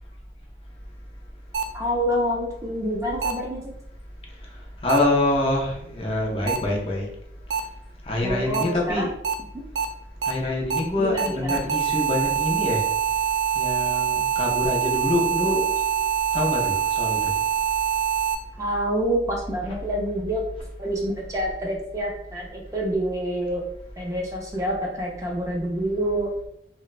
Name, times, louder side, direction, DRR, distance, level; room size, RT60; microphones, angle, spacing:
sound 1, 1.5-1.6 3.2-3.3 4.9-5.0 6.5-6.6 7.5-7.6 8.5-8.6 9.2-9.3 9.8-9.9 10.2-10.3 10.7-10.8 11.2-18.4, right 7 dB, 85° right, 0.4 m, -24 dB
voice 1, 1.7-3.7 8.2-9.1 11.0-11.6 18.6-20.4 20.8-23.6 24.0-26.3, equal, 20° right, -2 dB, 0.4 m, -27 dB
voice 2, 4.8-7.1 8.0-9.1 10.2-12.8 13.5-15.7 16.3-17.3 19.6-19.7, left 2 dB, 35° left, -1 dB, 0.5 m, -25 dB
3.0 x 2.0 x 2.4 m, 0.76 s
head